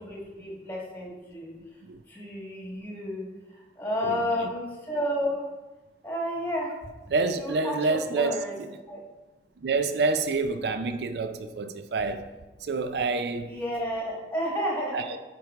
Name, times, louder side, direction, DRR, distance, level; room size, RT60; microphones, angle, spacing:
voice 1, 0.0-1.5 2.1-3.2 3.8-5.4 6.0-6.7 7.4-9.0 13.5-15.1, equal, 10° left, 1.4 m, -31 dB
voice 2, 4.0-4.5 7.1-8.7 9.6-12.3 12.6-13.6 14.9-15.2, right 3 dB, 70° right, 0.4 m, -28 dB
9.0 x 4.7 x 3.6 m
head